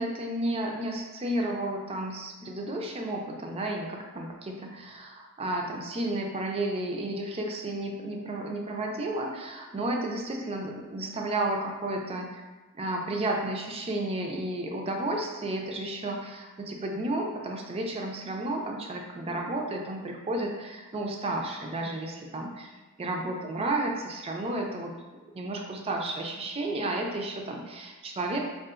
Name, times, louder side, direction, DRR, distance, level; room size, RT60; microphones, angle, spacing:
voice 1, 0.0-12.4 12.8-22.7 23.0-24.9 25.3-28.4, right 1 dB, 30° right, 1 dB, 0.3 m, -32 dB
3.7 x 2.4 x 2.4 m, 1.2 s
head